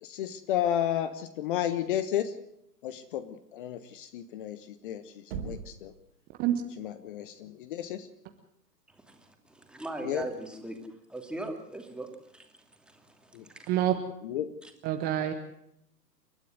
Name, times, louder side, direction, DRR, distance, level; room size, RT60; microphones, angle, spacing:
voice 1, 0.0-2.3 2.8-5.9 6.8-8.1 10.0-10.3 13.3-13.4 14.2-14.5, left 11 dB, 30° left, 12 dB, 1.3 m, -32 dB
Knock, 5.3-6.0, right 6 dB, 35° right, 3.4 m, -38 dB
voice 2, 8.9-10.8 11.1-12.1 12.3-13.7 14.6-14.7, right 2 dB, ahead, 3 dB, 2.7 m, -40 dB
voice 3, 14.8-15.3, right 12 dB, 20° right, 7 dB, 1.3 m, -26 dB
29.0 x 13.0 x 7.9 m, 0.78 s
figure-of-eight pair, 125°, 49 cm